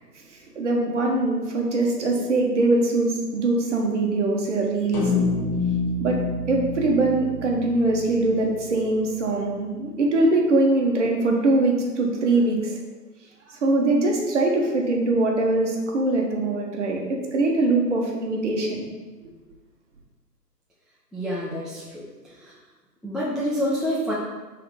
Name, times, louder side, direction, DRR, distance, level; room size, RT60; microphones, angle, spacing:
voice 1, 0.3-5.1 6.0-6.2 6.5-12.8 13.5-18.8, right 2 dB, 45° right, 0 dB, 1.4 m, -22 dB
sound 1, 4.9-9.4, left 3 dB, 25° left, 1.2 m, -28 dB
voice 2, 21.1-22.0 22.3-22.5 23.0-24.1, equal, ahead, -7 dB, 0.3 m, -27 dB
6.3 x 3.7 x 4.4 m, 1.2 s
figure-of-eight pair, 150°, 50 cm